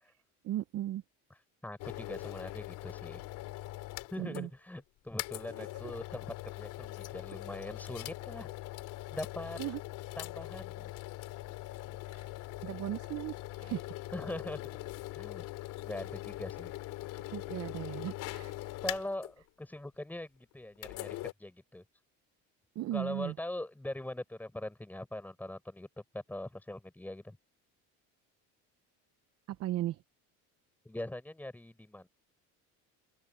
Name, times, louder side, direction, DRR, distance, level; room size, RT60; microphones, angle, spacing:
voice 1, 0.4-1.0 4.2-4.5 5.6-5.7 9.6-9.8 12.1-12.3 12.6-13.9 17.3-18.8 22.7-23.3 29.5-30.0, right 14 dB, 50° right, 0.8 m, -37 dB
voice 2, 1.6-3.2 4.1-8.5 9.1-9.6 10.2-10.9 11.9-12.0 14.1-14.7 15.1-15.5 15.8-16.7 17.1-17.2 18.8-21.8 22.9-27.4 30.8-32.1, left 1 dB, 5° left, 4.7 m, -42 dB
sound 1, 1.8-4.5 4.8-4.9 5.2-19.3 20.8-21.3, left 17 dB, 70° left, 3.0 m, -42 dB
open air
cardioid pair, 150°, 33 cm